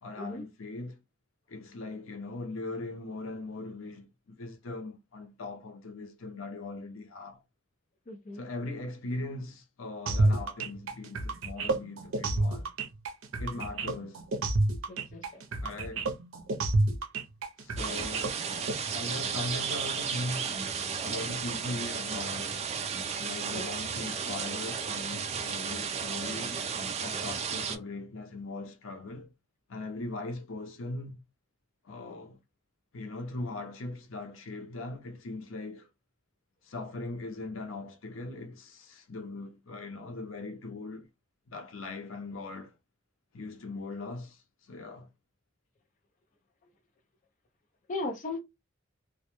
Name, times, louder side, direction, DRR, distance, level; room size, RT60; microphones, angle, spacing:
voice 1, 0.0-1.0 1.5-7.4 8.3-12.7 13.4-14.2 15.6-16.1 17.6-18.4 18.9-20.6 21.0-22.7 23.2-26.6 27.0-29.3 29.7-31.2 31.8-32.4 32.9-35.9 36.6-41.1 41.5-42.7 43.3-45.1, left 2 dB, 90° left, 0.6 m, -40 dB
voice 2, 8.1-8.4 14.9-15.2 23.5-23.7 47.9-48.4, left 2 dB, 40° left, 0.5 m, -36 dB
sound 1, 10.1-18.7, right 2 dB, 90° right, 0.5 m, -29 dB
sound 2, 17.8-27.8, right 6 dB, 30° right, 0.3 m, -34 dB
2.2 x 2.1 x 2.9 m
head